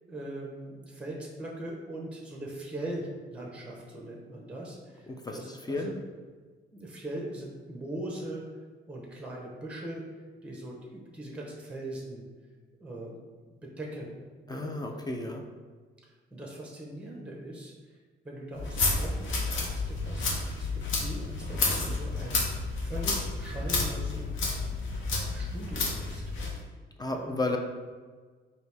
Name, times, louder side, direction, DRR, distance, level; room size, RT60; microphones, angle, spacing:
voice 1, 0.1-5.9 6.7-8.4 8.9-10.0 10.4-12.2 12.8-13.2 13.8-14.2 14.5-14.7 16.3-17.7 18.2-22.4 22.8-24.3 25.3-26.2 27.1-27.3, right 1 dB, 5° right, -2 dB, 0.8 m, -40 dB
voice 2, 5.1-5.9 14.5-15.4 27.0-27.6, left 2 dB, 20° left, 2 dB, 0.4 m, -33 dB
sound 1, 18.6-26.6, left 3 dB, 75° left, 0.9 m, -30 dB
4.0 x 2.6 x 3.4 m, 1.5 s
cardioid pair, 90°, 20 cm